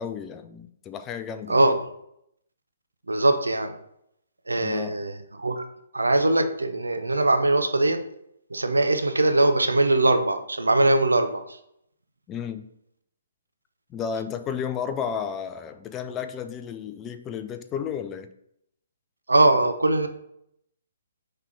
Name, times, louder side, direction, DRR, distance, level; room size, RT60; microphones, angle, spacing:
voice 1, 0.0-1.6 4.6-5.0 12.3-12.7 13.9-18.3, left 7 dB, 20° left, 9 dB, 0.4 m, -32 dB
voice 2, 3.1-3.7 4.5-5.6 5.9-8.0 8.5-11.6 19.3-20.1, right 2 dB, 85° right, 7 dB, 0.7 m, -21 dB
5.8 x 3.3 x 4.9 m, 0.75 s
figure-of-eight pair, 135°, 0 cm